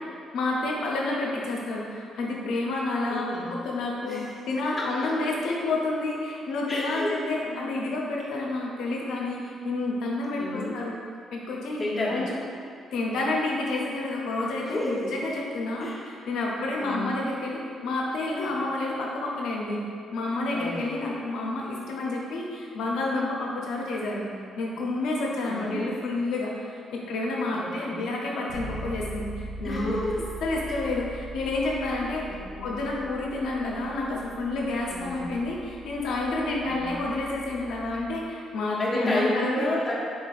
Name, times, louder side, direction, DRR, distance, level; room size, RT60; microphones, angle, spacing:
voice 1, 0.3-4.2 4.5-10.9 11.3-11.8 12.1-12.3 12.9-15.9 16.3-19.8 20.1-24.3 24.6-30.0 30.4-32.2 32.6-39.7, left 2 dB, 80° left, -2 dB, 0.7 m, -29 dB
voice 2, 3.1-3.5 4.0-4.3 4.8-5.0 6.7-7.7 10.4-10.8 11.8-12.3 14.6-15.1 15.8-16.1 16.8-17.2 20.5-21.0 25.5-25.9 27.5-28.0 29.6-30.2 30.6-30.8 32.3-32.7 34.9-35.2 36.6-36.9 38.8-39.9, left 1 dB, 25° left, -6 dB, 1.0 m, -31 dB
Bass guitar, 28.5-38.3, right 1 dB, 25° right, 1.2 m, -41 dB
3.9 x 3.8 x 2.5 m, 2.2 s
cardioid pair, 90°, 0 cm